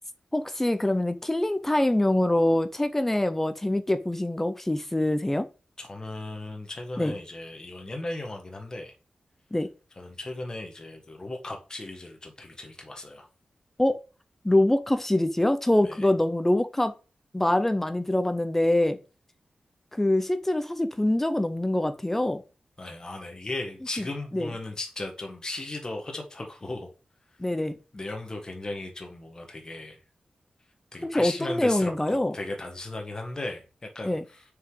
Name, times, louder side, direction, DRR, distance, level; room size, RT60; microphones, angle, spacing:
voice 1, 0.3-5.5 7.0-7.2 9.5-9.7 13.8-14.0 14.4-16.9 17.3-19.0 19.9-22.4 24.0-24.1 24.3-24.5 27.4-27.8 31.1-32.4 34.0-34.2, left 1 dB, 10° left, 0.6 m, -24 dB
voice 2, 5.8-8.9 10.0-13.3 15.8-16.1 22.8-26.9 27.9-30.0 30.9-34.4, left 2 dB, 30° left, 1.3 m, -36 dB
6.6 x 4.8 x 3.8 m
wide cardioid pair, 145°, 3 cm